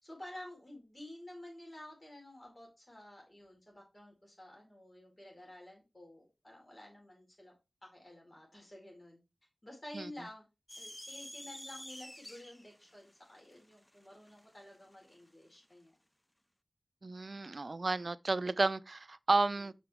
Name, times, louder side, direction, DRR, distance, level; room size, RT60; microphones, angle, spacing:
voice 1, 0.0-7.5 7.8-9.2 9.6-10.4 10.7-15.9 19.4-19.7, left 1 dB, 35° left, 4.6 m, -51 dB
sound 1, 10.7-15.2, left 1 dB, 15° left, 0.4 m, -49 dB
voice 2, 17.0-19.7, right 3 dB, 60° right, 0.4 m, -32 dB
6.1 x 6.1 x 3.6 m
wide cardioid pair, 55°, 0 cm